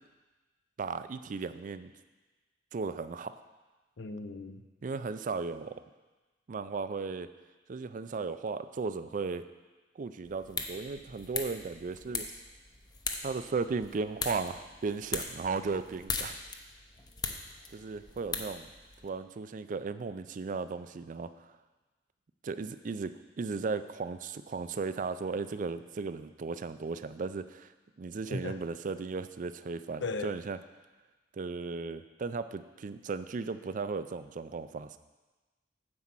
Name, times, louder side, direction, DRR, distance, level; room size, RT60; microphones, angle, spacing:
voice 1, 0.8-1.9 2.7-3.3 4.8-5.8 6.5-7.3 7.7-9.4 10.0-12.3 13.2-16.4 17.7-18.7 19.0-21.5 22.4-27.7 28.0-30.6 31.3-35.0, right 4 dB, 45° right, 12 dB, 0.4 m, -36 dB
voice 2, 4.0-4.6 28.3-28.6 30.0-30.3, left 3 dB, 80° left, 9 dB, 0.6 m, -36 dB
sound 1, 10.2-19.1, left 4 dB, 25° left, 0.6 m, -40 dB
9.7 x 4.3 x 7.4 m, 1.2 s
head